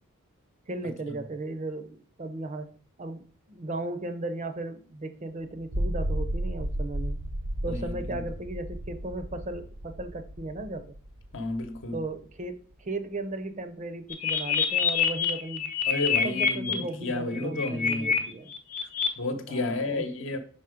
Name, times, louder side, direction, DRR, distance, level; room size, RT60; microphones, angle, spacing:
voice 1, 0.7-7.2 7.6-10.9 11.9-15.7 16.2-18.5 19.5-20.0, right 2 dB, 35° right, 0.5 m, -36 dB
sound 1, 5.7-12.0, right 1 dB, 85° right, 1.1 m, -33 dB
voice 2, 7.7-8.1 11.3-12.0 15.9-18.1 19.2-20.4, left 2 dB, 60° left, 0.9 m, -31 dB
sound 2, 14.1-16.7 17.3-18.2 18.5-19.1, left 7 dB, 35° left, 0.7 m, -26 dB
5.7 x 3.9 x 5.0 m
head